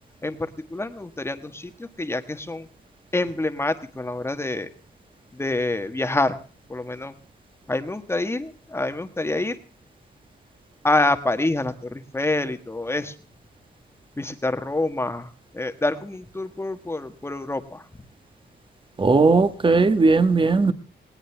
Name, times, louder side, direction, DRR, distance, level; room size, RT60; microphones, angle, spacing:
voice 1, 0.2-2.7 3.1-4.7 5.3-6.4 6.7-7.1 7.7-9.6 10.8-13.2 14.1-17.9, left 2 dB, 15° left, 9 dB, 1.5 m, -27 dB
voice 2, 19.0-20.7, right 3 dB, 25° right, 10 dB, 1.5 m, -17 dB
19.5 x 18.5 x 3.4 m, 0.38 s
wide cardioid pair, 150°, 19 cm